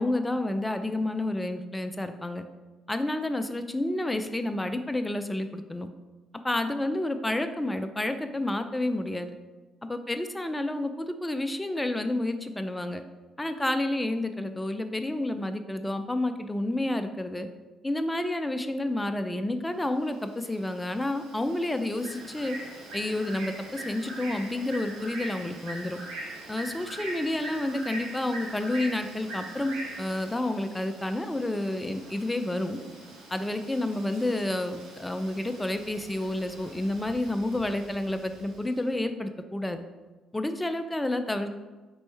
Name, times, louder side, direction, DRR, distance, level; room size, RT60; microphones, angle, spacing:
voice 1, 0.0-2.4 2.9-5.9 6.4-9.3 9.8-13.0 13.4-17.5 17.8-22.6 22.9-26.0 26.5-32.8 33.3-39.8 40.3-41.5, left 1 dB, 15° left, 8 dB, 0.4 m, -30 dB
Bird, 20.0-38.7, right 2 dB, 75° right, 0.9 m, -43 dB
5.3 x 3.1 x 3.0 m, 1.2 s
hypercardioid pair, 45°, 0 cm